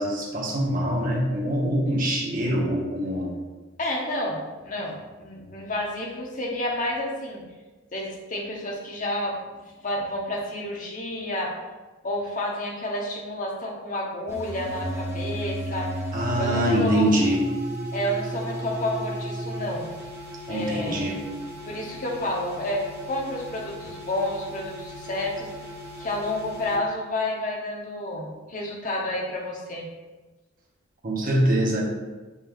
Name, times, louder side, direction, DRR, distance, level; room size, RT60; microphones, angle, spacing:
voice 1, 0.0-3.4 16.1-17.4 20.5-21.2 31.0-31.8, right 1 dB, 40° right, -2 dB, 1.2 m, -24 dB
voice 2, 3.8-7.4 7.9-9.4 9.8-11.6 12.0-15.9 16.4-17.1 17.9-19.9 20.5-21.2 21.6-25.5 26.0-29.8, left 1 dB, 40° left, -2 dB, 1.1 m, -30 dB
sound 1, 14.3-26.8, right 1 dB, 15° right, 1.3 m, -35 dB
6.9 x 5.5 x 2.5 m, 1.2 s
head